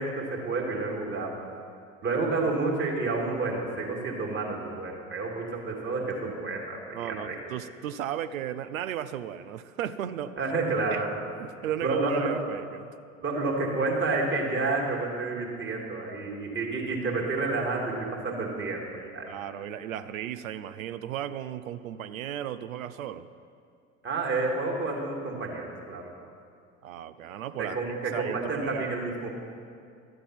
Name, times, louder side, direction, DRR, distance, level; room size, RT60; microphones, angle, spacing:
voice 1, 0.0-1.4 2.0-7.4 10.4-11.1 11.8-12.4 13.2-19.3 24.0-26.1 27.6-29.3, right 3 dB, 25° right, -1 dB, 2.2 m, -30 dB
voice 2, 6.9-10.4 10.9-11.0 11.4-12.9 19.3-23.3 26.8-28.8, right 10 dB, 75° right, 12 dB, 0.6 m, -35 dB
12.5 x 7.9 x 5.9 m, 2.3 s
figure-of-eight pair, 65°, 41 cm